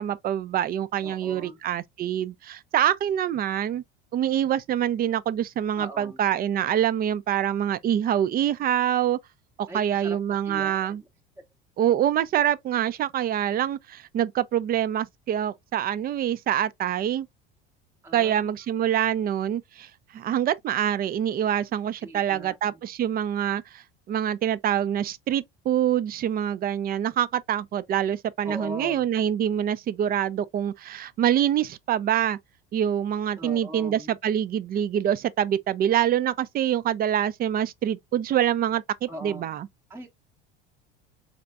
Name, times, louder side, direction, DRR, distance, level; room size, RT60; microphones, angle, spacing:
voice 1, 0.0-3.8 4.1-9.2 9.6-11.0 11.8-17.3 18.1-32.4 32.7-39.7, right 10 dB, 30° right, 0.4 m, -25 dB
voice 2, 1.0-1.6 5.8-6.2 9.7-10.2 10.4-11.0 18.0-18.5 22.0-22.6 28.4-29.1 33.4-34.2 39.1-39.5 39.9-40.1, equal, 10° right, 0.8 m, -40 dB
4.1 x 3.3 x 2.4 m
hypercardioid pair, 80°, 29 cm